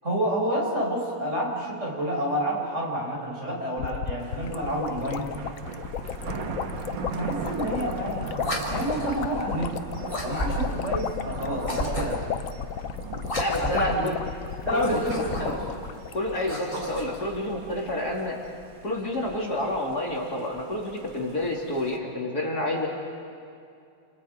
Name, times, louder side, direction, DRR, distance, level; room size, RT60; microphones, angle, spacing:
voice 1, 0.0-5.3 7.1-8.3 8.7-9.8 10.2-12.2 13.6-14.1 14.6-15.6, equal, 30° right, -3 dB, 5.8 m, -29 dB
sound 1, 3.8-16.5 16.8-16.9 17.1-17.4, left 8 dB, 85° left, 0.7 m, -34 dB
Thunder, 4.2-22.0, right 5 dB, 60° right, 1.9 m, -40 dB
sound 2, 8.4-9.2 10.1-10.9 11.6-12.3 13.2-13.9 14.7-15.7 16.3-17.2, right 1 dB, 15° left, 3.1 m, -33 dB
voice 2, 13.4-14.2 14.7-15.7 16.1-18.4 18.8-22.9, left 1 dB, 45° left, -2 dB, 3.0 m, -29 dB
29.5 x 28.5 x 5.1 m, 2.4 s
omnidirectional pair, 2.4 m